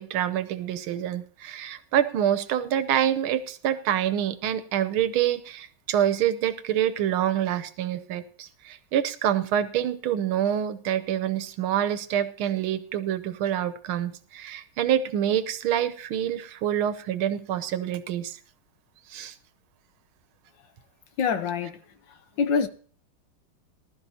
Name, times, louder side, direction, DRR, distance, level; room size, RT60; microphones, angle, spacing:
voice 1, 0.0-18.4 19.1-19.3, right 10 dB, 80° right, 1.7 m, -26 dB
voice 2, 21.2-21.8 22.4-22.7, left 6 dB, 65° left, 1.5 m, -24 dB
19.5 x 12.5 x 2.8 m
omnidirectional pair, 2.3 m